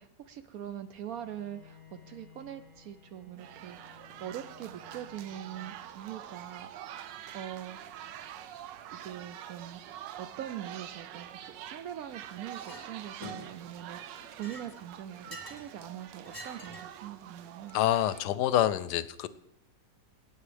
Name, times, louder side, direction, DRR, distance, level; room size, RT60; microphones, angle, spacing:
voice 1, 0.0-8.0 8.9-17.8, right 10 dB, 70° right, 10 dB, 0.8 m, -43 dB
Bowed string instrument, 1.0-6.3, left 6 dB, 30° right, 5.4 m, -57 dB
sound 1, 3.4-18.2, right 10 dB, 90° right, 1.3 m, -46 dB
Chink clink, 12.5-12.8 13.2-13.7 14.2-15.7 16.2-17.0, left 1 dB, 10° right, 1.5 m, -46 dB
voice 2, 17.7-19.3, left 12 dB, 75° left, 15 dB, 1.1 m, -27 dB
16.5 x 8.6 x 3.3 m, 0.79 s
omnidirectional pair, 1.9 m